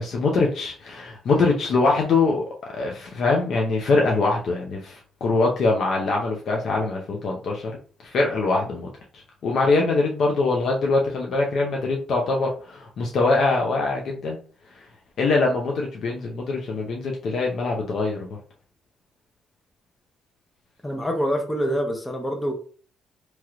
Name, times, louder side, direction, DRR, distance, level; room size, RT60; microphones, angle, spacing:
voice 1, 0.0-2.4 2.7-7.7 8.0-8.9 9.4-14.4 15.2-18.3, left 3 dB, 65° left, 0 dB, 0.6 m, -23 dB
voice 2, 20.8-22.5, equal, 10° left, 2 dB, 0.7 m, -25 dB
3.0 x 3.0 x 2.4 m, 0.42 s
cardioid pair, 90°, 0 cm